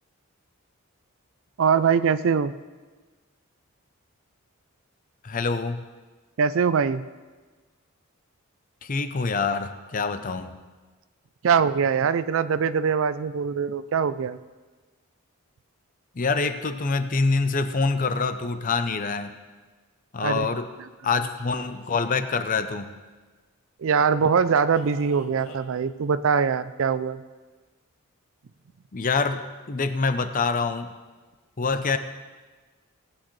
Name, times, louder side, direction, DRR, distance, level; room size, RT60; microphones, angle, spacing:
voice 1, 1.6-2.5 6.4-7.1 11.4-14.4 20.2-20.5 23.8-27.2, right 6 dB, 60° right, 15 dB, 0.4 m, -22 dB
voice 2, 5.2-5.8 8.8-10.5 16.1-19.4 20.1-20.7 21.0-22.9 28.9-30.9 31.6-32.0, left 4 dB, 35° left, 10 dB, 0.6 m, -25 dB
Male speech man speaking, 21.4-22.3 24.8-25.6, left 1 dB, 80° left, 1.7 m, -45 dB
18.0 x 8.8 x 3.2 m, 1.3 s
head